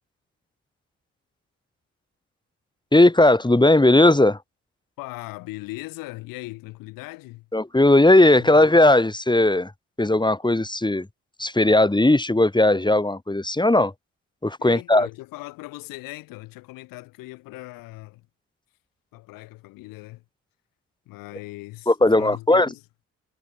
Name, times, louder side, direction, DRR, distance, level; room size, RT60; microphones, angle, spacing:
voice 1, 2.9-4.4 7.5-9.7 10.0-11.1 11.4-13.9 14.4-15.1 21.9-22.7, left 2 dB, 15° left, 3.5 m, -17 dB
voice 2, 5.0-7.5 8.1-8.6 14.6-18.2 19.1-20.2 21.1-21.9 22.1-22.8, left 21 dB, 85° left, 4.4 m, -39 dB
supercardioid pair, 60°, 33 cm